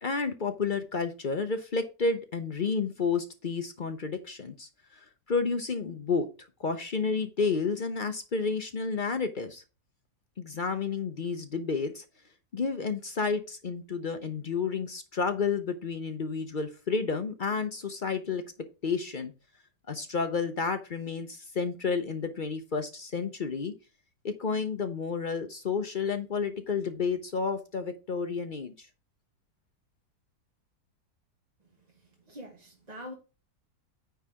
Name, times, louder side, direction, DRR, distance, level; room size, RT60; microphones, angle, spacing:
voice 1, 0.0-6.3 6.6-9.6 10.4-12.0 12.5-18.4 18.8-19.3 19.9-23.7 24.2-28.9, left 5 dB, 45° left, 0.6 m, -31 dB
voice 2, 32.3-33.1, equal, 25° right, 1.3 m, -43 dB
9.3 x 4.0 x 4.7 m
omnidirectional pair, 1.8 m